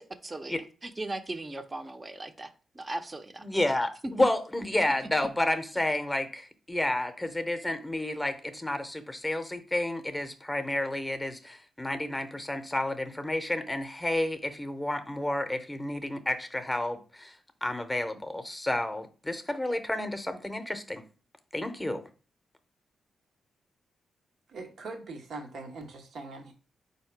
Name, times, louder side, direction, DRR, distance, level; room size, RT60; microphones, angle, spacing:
voice 1, 0.2-3.5, right 2 dB, 25° right, 0.6 m, -38 dB
voice 2, 3.4-21.0 21.5-22.0, left 1 dB, 10° left, 0.7 m, -31 dB
voice 3, 24.5-26.5, right 3 dB, 75° right, 0.9 m, -41 dB
4.2 x 2.8 x 4.5 m
cardioid pair, 60°, 0 cm